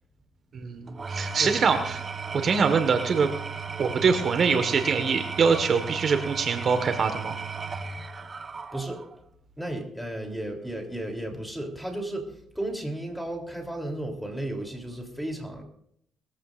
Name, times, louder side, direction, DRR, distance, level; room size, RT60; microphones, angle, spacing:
voice 1, 0.5-2.0 2.3-3.3 3.8-7.4, right 5 dB, 55° right, 7 dB, 1.5 m, -24 dB
Engine / Tools, 0.9-9.2, right 5 dB, 35° right, 1.1 m, -35 dB
voice 2, 8.7-9.0 9.6-15.6, right 1 dB, ahead, 1 dB, 3.3 m, -34 dB
21.0 x 15.0 x 2.6 m, 0.70 s
cardioid pair, 90°, 0 cm